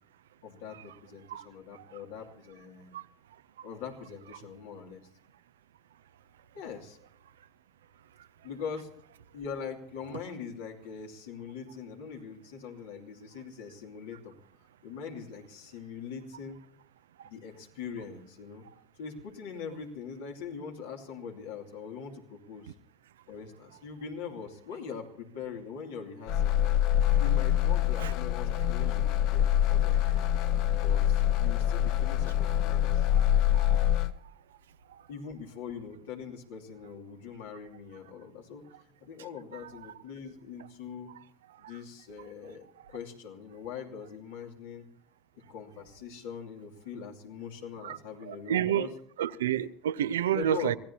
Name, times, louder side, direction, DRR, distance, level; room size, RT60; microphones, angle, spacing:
voice 1, 0.4-3.0 3.6-5.0 6.5-7.0 8.4-8.9 9.3-14.4 14.8-16.6 17.2-18.6 19.0-22.7 23.3-26.5 27.2-30.3 30.7-33.1 35.1-41.1 41.6-44.9 45.5-48.9 50.3-50.8, left 6 dB, 80° left, 2.7 m, -42 dB
sound 1, 26.3-34.1, left 11 dB, 65° left, 0.8 m, -25 dB
voice 2, 33.5-33.9 34.9-35.0 41.6-41.7 47.8-48.0 48.3-48.9 49.2-50.8, right 10 dB, 90° right, 0.5 m, -30 dB
26.0 x 16.0 x 2.9 m
hypercardioid pair, 90°, 0 cm